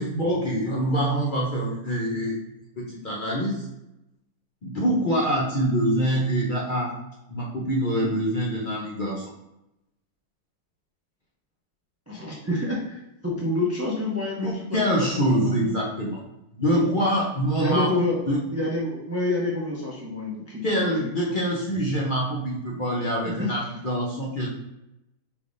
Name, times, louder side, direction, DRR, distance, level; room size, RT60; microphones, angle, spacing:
voice 1, 0.0-2.4 2.8-3.7 4.6-6.9 7.3-9.2 14.4-16.2 16.5-17.9 18.3-18.4 20.6-24.5, equal, 45° left, -4 dB, 0.6 m, -25 dB
voice 2, 12.1-15.5 16.7-16.9 17.6-18.2 18.5-21.1 23.2-23.5, left 2 dB, 25° right, -3 dB, 0.3 m, -28 dB
5.1 x 3.3 x 2.6 m, 0.88 s
omnidirectional pair, 1.6 m